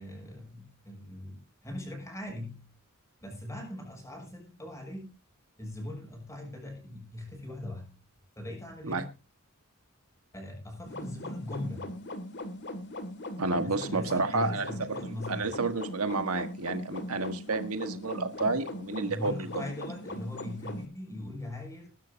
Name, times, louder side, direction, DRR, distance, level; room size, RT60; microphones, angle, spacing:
voice 1, 0.0-2.7 3.2-5.1 5.6-8.0 8.3-9.2 10.3-12.0 13.5-15.6 19.1-21.9, left 1 dB, 15° left, 2 dB, 6.8 m, -40 dB
sound 1, 10.9-20.9, left 1 dB, 55° left, 2.3 m, -40 dB
voice 2, 13.4-19.7, right 3 dB, 85° right, 8 dB, 1.6 m, -31 dB
21.0 x 11.5 x 2.8 m, 0.29 s
head